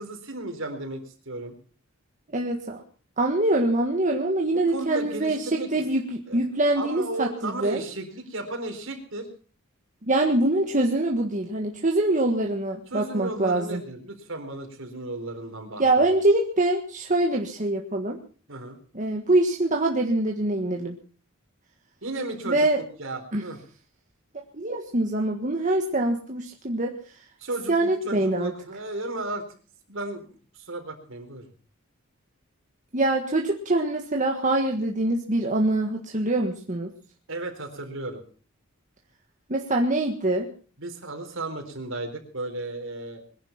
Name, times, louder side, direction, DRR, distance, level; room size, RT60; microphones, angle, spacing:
voice 1, 0.0-1.5 4.5-5.7 6.3-6.4 6.7-9.3 12.9-16.1 18.5-18.8 22.0-23.6 27.4-29.4 29.9-30.3 30.5-31.5 37.3-38.2 40.8-43.2, right 2 dB, 65° right, 5 dB, 4.2 m, -34 dB
voice 2, 2.3-2.8 3.2-7.8 10.0-13.8 15.8-18.2 18.9-21.0 22.4-22.8 23.3-23.5 24.5-26.9 27.7-28.5 32.9-36.9 39.5-40.5, right 2 dB, 35° right, 1 dB, 1.6 m, -24 dB
21.5 x 11.0 x 5.8 m, 0.41 s
head